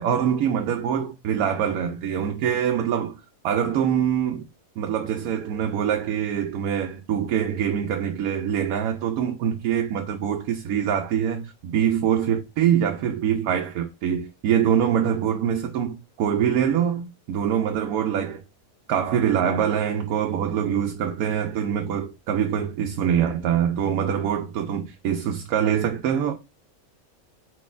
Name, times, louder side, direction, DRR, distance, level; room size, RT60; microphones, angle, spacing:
voice 1, 0.0-3.2 3.4-4.5 4.8-18.4 18.9-26.3, right 9 dB, 90° right, 1.0 m, -24 dB
4.5 x 4.1 x 2.4 m
omnidirectional pair, 1.5 m